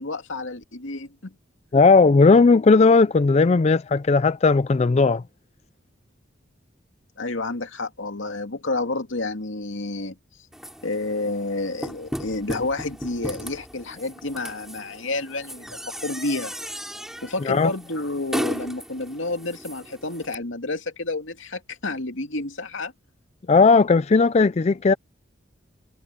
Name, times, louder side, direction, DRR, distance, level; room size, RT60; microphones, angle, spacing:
voice 1, 0.0-1.3 7.2-10.2 10.8-16.5 17.2-22.9, left 2 dB, 80° left, 2.4 m, -30 dB
voice 2, 1.7-5.2 17.5-17.7 23.5-24.9, left 4 dB, 35° left, 0.4 m, -16 dB
sound 1, 10.5-20.4, equal, ahead, 7.0 m, -36 dB
head